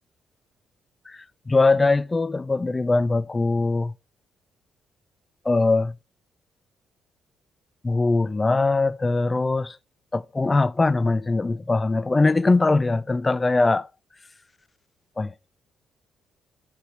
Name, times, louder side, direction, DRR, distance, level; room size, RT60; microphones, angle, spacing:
voice 1, 1.5-3.9 5.5-5.9 7.8-9.8 10.1-13.9 15.2-15.5, left 3 dB, 20° left, 0.4 m, -21 dB
14.5 x 5.0 x 3.0 m
cardioid pair, 90°, 0 cm